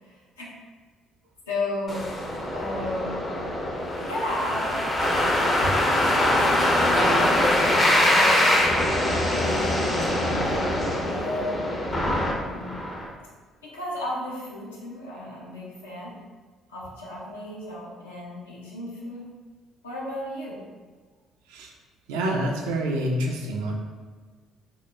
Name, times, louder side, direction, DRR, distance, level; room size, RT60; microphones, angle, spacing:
voice 1, 0.0-0.5 1.5-2.2 2.5-3.2 4.0-6.7 7.1-8.6 9.1-11.6 12.0-12.8 13.6-16.2 16.7-19.3 19.8-20.6, left 1 dB, 80° left, -6 dB, 0.5 m, -34 dB
sound 1, 1.9-13.0, left 1 dB, 35° left, 0.5 m, -23 dB
voice 2, 22.1-23.7, right 1 dB, 70° right, 1 dB, 0.3 m, -27 dB
2.2 x 2.0 x 3.1 m, 1.4 s
figure-of-eight pair, 50°, 0 cm